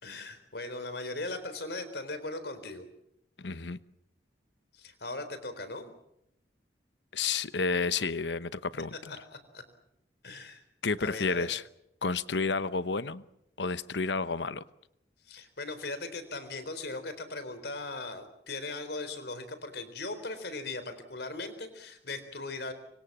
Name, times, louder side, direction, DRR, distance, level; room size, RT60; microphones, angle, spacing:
voice 1, 0.0-2.9 4.7-5.9 9.5-9.6 10.2-10.6 11.0-11.5 15.3-22.7, left 2 dB, 65° left, 11 dB, 4.0 m, -38 dB
voice 2, 3.4-3.8 7.1-9.2 10.8-11.6 12.0-13.2 13.6-14.6, left 4 dB, 80° left, 15 dB, 1.0 m, -31 dB
25.5 x 24.5 x 7.4 m, 0.80 s
head